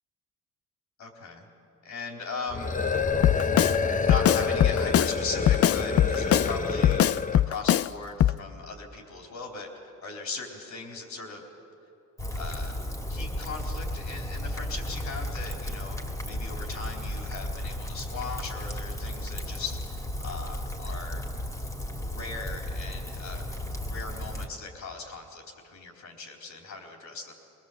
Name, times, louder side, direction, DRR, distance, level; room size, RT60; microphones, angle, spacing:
voice 1, 1.0-1.5 1.8-2.7 3.7-7.0 7.3-11.4 12.3-12.7 13.1-21.2 22.0-23.5 23.8-27.3, left 4 dB, 70° left, 1 dB, 3.7 m, -39 dB
sound 1, 2.5-7.5, left 5 dB, 25° left, 1.0 m, -28 dB
Drum kit, 3.2-3.8 4.1-5.1 5.5-6.5 6.8-7.9 8.2-8.4, left 11 dB, 50° left, 0.4 m, -21 dB
Rain, 12.2-24.5, left 1 dB, 10° left, 2.2 m, -34 dB
23.0 x 20.5 x 7.4 m, 2.6 s
cardioid pair, 90°, 30 cm